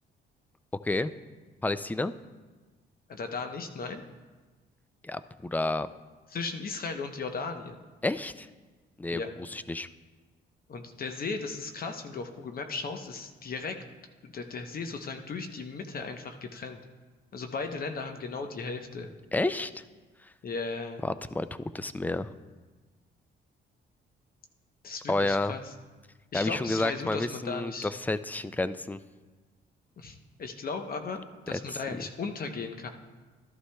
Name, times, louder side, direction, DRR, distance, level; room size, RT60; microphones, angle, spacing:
voice 1, 1.6-2.1 5.0-5.9 8.0-8.5 9.0-9.2 9.5-9.9 19.3-19.8 21.0-22.3 25.1-25.5 26.3-29.0 31.5-31.6, left 2 dB, 10° left, 14 dB, 0.3 m, -30 dB
voice 2, 3.1-4.0 6.3-7.8 9.1-9.3 10.7-13.8 14.2-16.8 17.3-19.1 20.4-21.0 24.8-25.6 26.3-27.9 30.0-32.9, left 4 dB, 50° left, 6 dB, 0.8 m, -36 dB
13.0 x 11.5 x 2.2 m, 1.3 s
cardioid pair, 90°, 20 cm